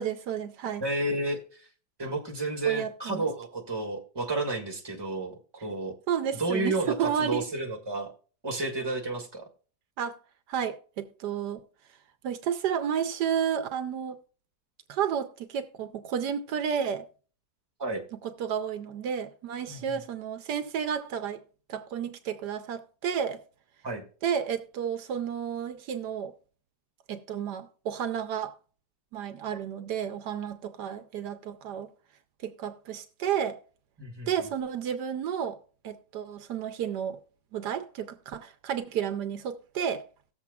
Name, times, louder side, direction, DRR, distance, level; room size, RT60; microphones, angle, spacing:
voice 1, 0.0-0.8 2.7-3.2 6.1-7.4 10.0-10.2 10.5-11.6 12.2-14.2 14.9-17.0 18.2-21.4 21.7-23.4 24.2-26.3 27.1-28.5 29.1-31.9 32.4-33.6 34.3-35.6 35.8-37.2 37.5-40.0, right 8 dB, 80° right, 1.3 m, -31 dB
voice 2, 0.8-1.7 2.0-5.3 5.6-5.9 6.4-8.1 8.4-9.5 17.8-18.0 19.7-20.0 23.8-24.0 34.0-34.3, right 2 dB, 15° right, 1.4 m, -31 dB
18.0 x 7.2 x 2.3 m
omnidirectional pair, 1.8 m